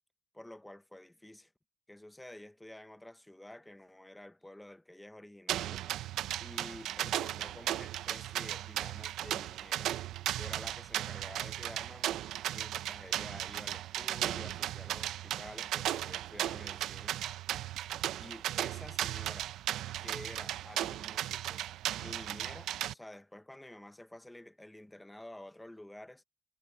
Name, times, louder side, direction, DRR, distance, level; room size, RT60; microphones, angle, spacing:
voice 1, 0.3-1.5 1.9-6.0 6.3-10.0 10.4-12.2 12.5-17.1 18.2-19.5 20.0-21.6 22.0-26.2, left 1 dB, 5° left, 0.8 m, -50 dB
sound 1, 5.5-22.9, right 12 dB, 90° right, 0.6 m, -36 dB
cardioid pair, 160°, 0 cm